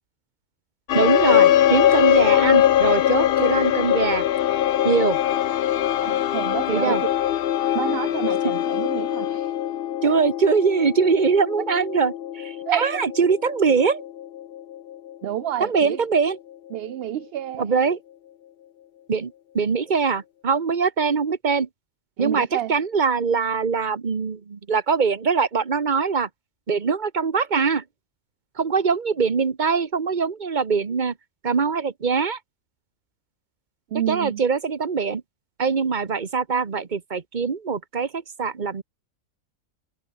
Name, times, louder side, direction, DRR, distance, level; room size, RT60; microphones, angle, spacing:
sound 1, 0.9-15.6, left 11 dB, 60° left, 0.6 m, -22 dB
voice 1, 0.9-4.3 4.8-5.2 6.7-7.0 10.0-14.0 15.6-16.4 17.6-18.0 19.1-21.7 22.2-26.3 26.7-27.8 28.6-31.1 31.4-32.4 34.1-35.2 35.6-38.8, right 5 dB, 35° right, 1.3 m, -22 dB
voice 2, 6.0-7.0 7.7-9.5 10.0-10.2 12.7-13.0 15.2-16.0 16.7-17.7 22.2-22.7 33.9-34.4, right 12 dB, 65° right, 0.6 m, -29 dB
omnidirectional pair, 1.5 m